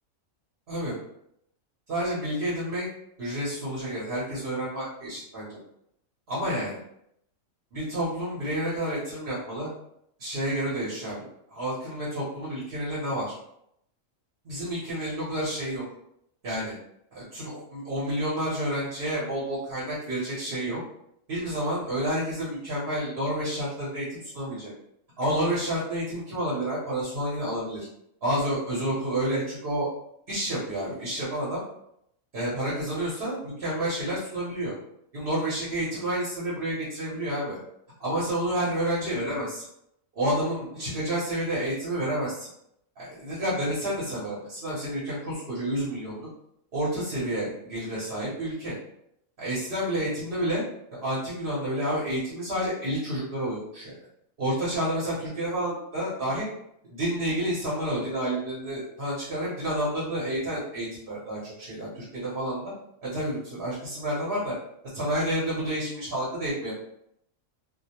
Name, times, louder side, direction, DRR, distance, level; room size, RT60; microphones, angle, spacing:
voice 1, 1.9-2.9 3.2-5.6 6.3-6.8 7.7-9.7 10.2-11.2 11.5-13.3 14.4-15.8 16.4-16.7 17.1-20.8 21.3-24.7 25.2-27.9 28.2-29.9 30.3-31.6 32.3-34.7 35.1-37.6 38.0-39.6 40.1-42.5 43.0-46.3 46.7-48.7 49.4-50.6 50.9-54.0 54.4-56.5 56.9-62.7 63.0-64.5 64.9-66.7, right 1 dB, 50° right, -7 dB, 0.9 m, -29 dB
2.3 x 2.0 x 2.8 m, 0.76 s
omnidirectional pair, 1.4 m